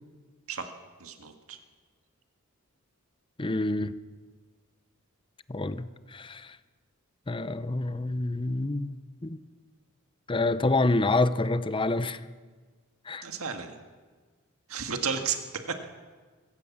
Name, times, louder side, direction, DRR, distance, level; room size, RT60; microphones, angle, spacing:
voice 1, 1.0-1.6 13.2-13.7 14.7-15.8, right 6 dB, 80° right, 1.8 m, -33 dB
voice 2, 3.4-3.9 5.5-6.6 7.3-9.4 10.3-12.2 13.1-13.2, left 2 dB, 25° left, 0.7 m, -27 dB
24.0 x 15.5 x 7.3 m
head